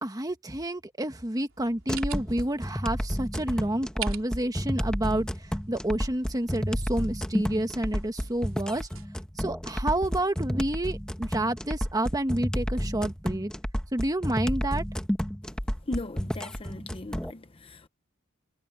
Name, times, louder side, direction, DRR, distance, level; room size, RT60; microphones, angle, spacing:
voice 1, 0.0-8.9 9.4-13.5 13.9-14.8, right 1 dB, 20° right, 1.5 m, -29 dB
sound 1, 1.5-9.1, right 10 dB, 70° right, 4.0 m, -46 dB
sound 2, 1.9-17.3, equal, 5° left, 1.2 m, -31 dB
voice 2, 15.8-17.9, left 2 dB, 25° left, 0.7 m, -38 dB
head